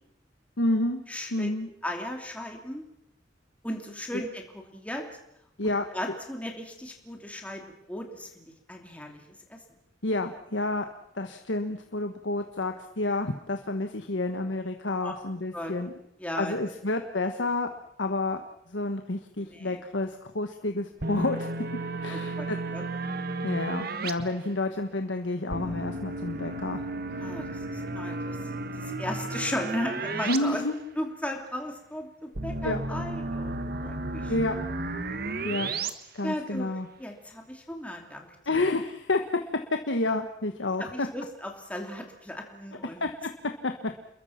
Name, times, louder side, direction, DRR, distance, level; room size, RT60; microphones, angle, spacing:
voice 1, 0.6-1.0 1.3-1.7 5.6-5.8 10.0-10.8 11.1-16.0 16.4-17.7 18.0-18.4 18.7-21.5 22.0-22.6 23.4-26.8 30.3-30.7 32.6-32.8 34.3-34.5 35.4-35.7 36.1-36.9 38.5-39.2 39.9-41.1 43.0-43.1 43.6-43.7, left 2 dB, 80° left, 5 dB, 1.5 m, -29 dB
voice 2, 1.1-1.5 1.8-2.9 3.6-5.1 5.9-7.6 7.9-9.6 15.0-15.1 15.5-15.7 16.2-16.5 19.4-19.8 22.1-22.8 27.2-30.6 31.0-34.3 36.2-38.7 40.8-43.1, left 1 dB, 5° left, 2 dB, 2.9 m, -36 dB
sound 1, 21.0-24.1 25.5-30.4 30.7-30.8 32.4-35.9, right 2 dB, 55° right, 1.5 m, -33 dB
29.0 x 22.0 x 5.9 m, 0.78 s
head